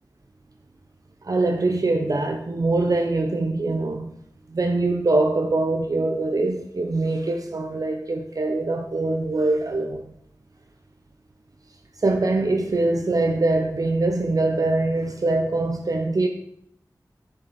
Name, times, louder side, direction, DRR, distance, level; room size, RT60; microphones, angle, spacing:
voice 1, 1.2-4.1 4.5-10.0 12.0-16.3, right 2 dB, 55° right, 0.7 m, -23 dB
6.9 x 6.6 x 4.2 m
wide cardioid pair, 65°, 7 cm